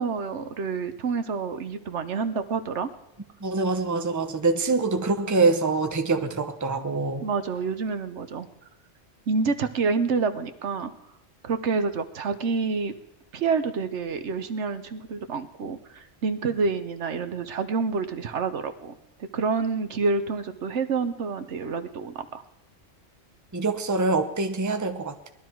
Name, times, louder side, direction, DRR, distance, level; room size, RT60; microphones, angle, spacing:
voice 1, 0.0-2.9 7.2-8.5 9.3-10.9 11.4-12.9 13.3-18.9 19.3-22.4, right 4 dB, 70° right, 9 dB, 1.2 m, -28 dB
voice 2, 3.4-7.3 23.5-25.1, right 3 dB, 15° right, 6 dB, 0.8 m, -24 dB
19.5 x 12.5 x 4.6 m, 0.86 s
omnidirectional pair, 1.2 m